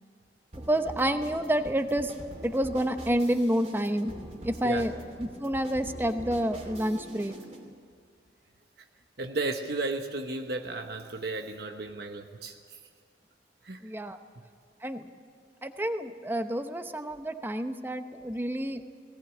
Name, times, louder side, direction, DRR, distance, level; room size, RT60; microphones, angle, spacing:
sound 1, 0.5-7.6, right 1 dB, 40° right, 3.0 m, -44 dB
voice 1, 0.7-2.1 2.4-4.1 4.4-4.9 5.2-7.3 13.8-14.2 14.8-15.1 15.6-18.8, right 1 dB, 10° right, 8 dB, 0.8 m, -29 dB
voice 2, 9.2-12.8 13.6-13.9, right 2 dB, 60° right, 4 dB, 1.0 m, -34 dB
18.5 x 18.0 x 8.4 m, 2.3 s
head